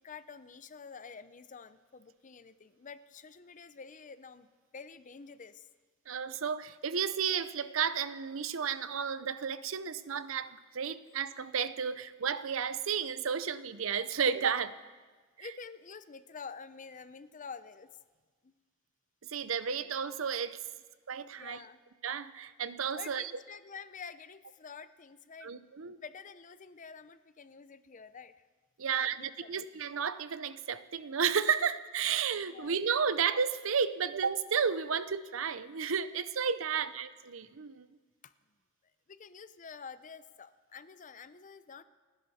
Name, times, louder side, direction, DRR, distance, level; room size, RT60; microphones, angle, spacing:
voice 1, 0.0-4.5 4.7-5.7 15.4-18.0 18.4-18.5 21.4-21.8 22.9-28.4 28.9-29.6 32.5-32.8 36.7-36.8 38.2-38.3 39.1-41.8, left 5 dB, 40° left, 13 dB, 0.6 m, -48 dB
voice 2, 6.1-14.7 15.4-15.5 19.3-20.6 21.1-21.6 22.0-23.3 25.4-26.0 28.8-37.9, right 7 dB, 70° right, 14 dB, 0.6 m, -32 dB
30.0 x 10.5 x 4.2 m, 1.4 s
head